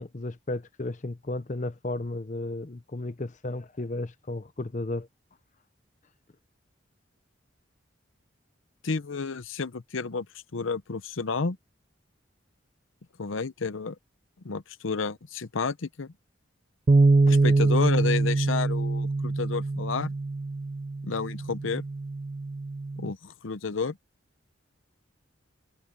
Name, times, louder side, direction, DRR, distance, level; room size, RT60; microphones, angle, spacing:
voice 1, 0.0-5.1 17.3-17.4, left 2 dB, 40° left, 0.7 m, -34 dB
voice 2, 8.8-10.3 10.5-11.6 13.2-14.0 14.4-16.1 17.3-20.1 21.0-21.8 23.0-24.0, left 4 dB, 85° left, 0.8 m, -31 dB
Bass guitar, 16.9-23.1, right 3 dB, 35° right, 0.4 m, -24 dB
head